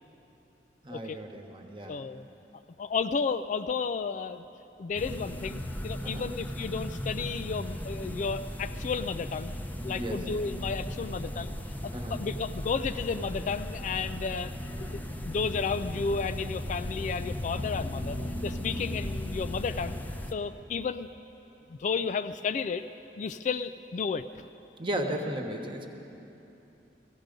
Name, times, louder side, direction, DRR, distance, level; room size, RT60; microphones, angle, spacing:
voice 1, 0.8-2.0 6.0-6.3 10.0-10.3 11.9-12.2 24.8-25.9, right 1 dB, 30° right, 3 dB, 1.1 m, -35 dB
voice 2, 1.9-2.2 2.8-4.4 4.8-9.5 9.8-11.5 11.8-14.5 14.8-18.2 18.4-20.0 20.3-21.1 21.7-22.8 23.2-24.4, left 5 dB, 45° left, 11 dB, 0.3 m, -32 dB
sound 1, 4.9-20.3, left 1 dB, 10° left, 0.6 m, -36 dB
18.0 x 15.0 x 5.2 m, 3.0 s
head